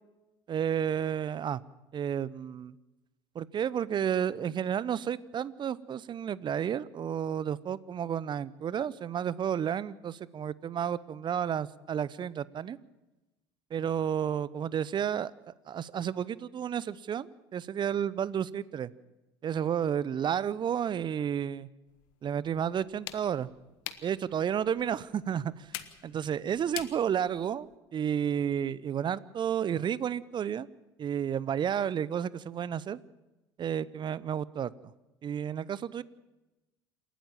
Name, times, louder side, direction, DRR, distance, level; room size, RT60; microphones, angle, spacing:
voice 1, 0.5-1.6 1.9-2.7 3.3-12.8 13.7-18.9 19.4-21.7 22.2-23.5 24.0-25.7 26.0-30.7 31.0-33.0 33.6-34.7 35.2-36.0, right 8 dB, 35° right, 20 dB, 0.8 m, -31 dB
sound 1, 21.9-27.8, left 15 dB, 65° left, 1.3 m, -46 dB
28.0 x 12.5 x 7.4 m, 1.0 s
figure-of-eight pair, 65°, 14 cm